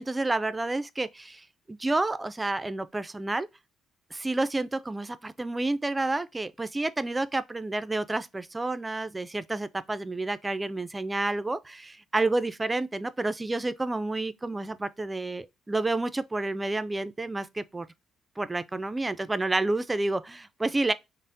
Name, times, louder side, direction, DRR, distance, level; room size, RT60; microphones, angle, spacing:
voice 1, 0.0-3.5 4.1-17.9 18.4-20.9, right 2 dB, 15° right, 0.4 m, -30 dB
5.4 x 2.0 x 2.6 m
cardioid pair, 90°, 0 cm